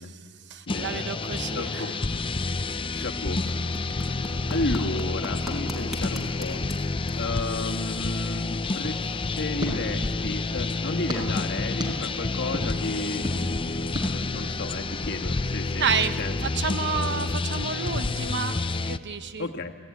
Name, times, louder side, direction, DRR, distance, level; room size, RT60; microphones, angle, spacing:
voice 1, 0.0-2.0 15.8-16.1 16.4-19.5, right 6 dB, 55° right, 10 dB, 1.0 m, -30 dB
voice 2, 0.7-1.1 1.5-2.0 2.9-3.4 3.9-6.7 7.1-9.1 9.4-15.8 16.2-16.3 16.6-16.7 19.4-19.7, left 2 dB, 55° left, 4 dB, 1.6 m, -33 dB
sound 1, 0.7-19.0, left 3 dB, 25° left, 0.6 m, -29 dB
sound 2, 3.2-17.5, left 1 dB, ahead, 4.3 m, -47 dB
sound 3, 8.8-10.5 11.1-11.2 11.8-11.9 12.5-12.7 13.2-13.4 13.9-14.1, equal, 20° right, 5.1 m, -34 dB
29.5 x 17.5 x 9.7 m, 2.1 s
head